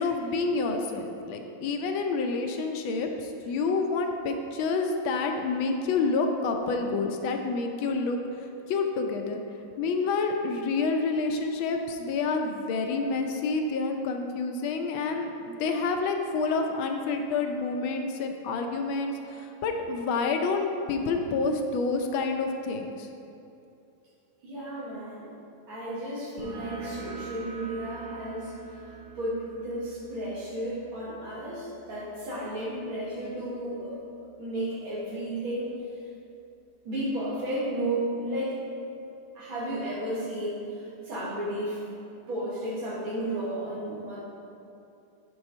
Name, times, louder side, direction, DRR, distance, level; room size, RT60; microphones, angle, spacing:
voice 1, 0.0-9.4 9.8-23.1, left 4 dB, 80° left, 4 dB, 1.4 m, -28 dB
voice 2, 24.4-25.3 25.7-28.5 29.2-34.0 34.4-35.7 36.8-38.6 39.4-40.7 41.0-41.8 42.3-44.2, right 1 dB, 85° right, -7 dB, 2.6 m, -33 dB
sound 1, 26.4-33.6, right 4 dB, 65° right, 1.5 m, -44 dB
7.8 x 3.9 x 5.3 m, 2.7 s
omnidirectional pair, 2.2 m